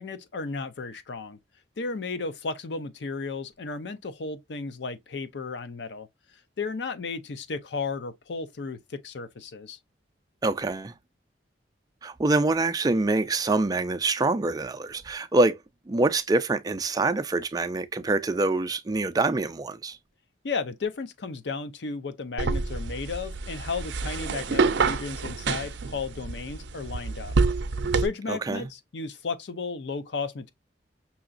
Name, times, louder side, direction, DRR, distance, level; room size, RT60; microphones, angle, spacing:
voice 1, 0.0-1.4 1.8-6.1 6.6-9.8 20.4-27.4 28.0-30.5, left 4 dB, 70° left, 0.5 m, -34 dB
voice 2, 10.4-10.9 12.0-15.6 15.9-20.0 28.3-28.7, right 2 dB, 20° right, 0.4 m, -25 dB
sound 1, 22.4-28.1, right 4 dB, 80° right, 0.5 m, -27 dB
5.6 x 2.9 x 2.5 m
head